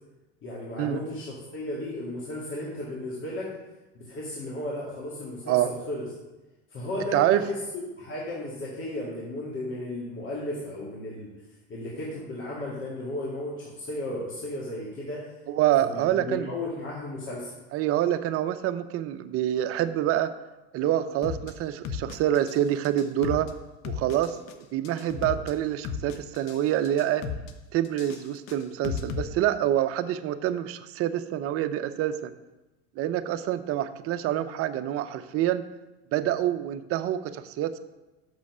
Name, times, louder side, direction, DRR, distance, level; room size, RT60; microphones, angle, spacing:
voice 1, 0.4-3.5 3.9-6.1 6.7-11.4 11.7-15.3 15.8-17.5, left 1 dB, 40° left, -5 dB, 2.2 m, -34 dB
voice 2, 7.1-7.4 15.5-16.5 17.7-20.3 20.7-23.5 23.8-27.3 27.7-32.3 33.0-35.6 36.1-37.8, right 12 dB, 45° right, 10 dB, 0.7 m, -26 dB
sound 1, 21.2-21.5 21.8-22.6 22.8-23.5 23.8-24.5 24.8-25.5 25.8-26.6 26.8-27.5 27.8-29.2, left 6 dB, 55° left, 1.0 m, -34 dB
6.5 x 6.2 x 6.1 m, 1.1 s
hypercardioid pair, 90°, 32 cm